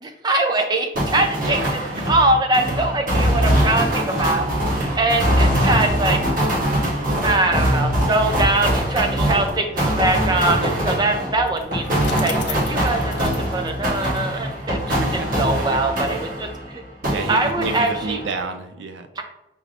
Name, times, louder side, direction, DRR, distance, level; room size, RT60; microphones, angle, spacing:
voice 1, 0.0-1.8 2.1-4.5 5.0-6.2 7.2-15.0 15.4-16.8 17.3-18.2 19.2-19.3, right 2 dB, 20° right, 4 dB, 0.5 m, -22 dB
sound 1, 1.0-16.7 17.0-18.4, equal, 45° right, 1.1 m, -22 dB
voice 2, 1.2-2.2 5.2-5.6 14.8-15.5 16.0-16.3 17.1-19.1, right 3 dB, 75° right, 7 dB, 0.5 m, -31 dB
Bicycle, 11.4-14.6, left 7 dB, 65° left, 0.5 m, -36 dB
5.3 x 3.4 x 2.5 m, 0.93 s
head